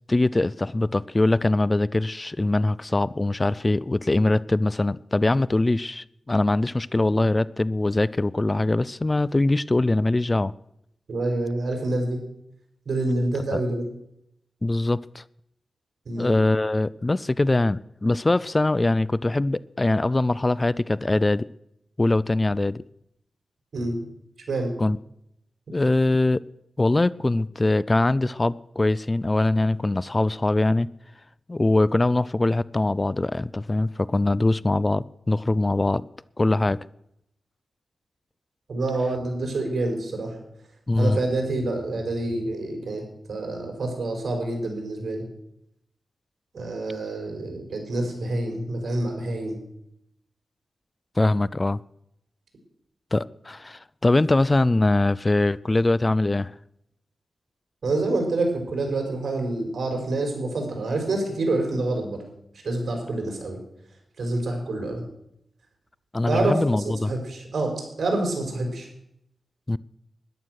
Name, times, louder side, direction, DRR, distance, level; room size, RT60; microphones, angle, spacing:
voice 1, 0.1-10.5 13.5-13.6 14.6-15.2 16.2-21.5 22.0-22.8 24.8-25.0 25.7-26.4 26.8-30.9 31.5-36.0 36.4-36.8 40.9-41.2 51.2-51.8 53.1-56.5 66.1-67.1 69.7-69.8, left 2 dB, 30° left, 0.4 m, -22 dB
voice 2, 11.1-12.2 12.9-13.9 16.1-16.3 23.7-24.0 24.5-24.7 38.7-40.4 41.0-43.0 43.3-45.2 46.5-49.6 57.8-62.2 62.6-63.6 64.2-65.0 66.3-68.9, right 2 dB, 65° right, 5.1 m, -27 dB
13.5 x 11.0 x 6.4 m
cardioid pair, 60°, 0 cm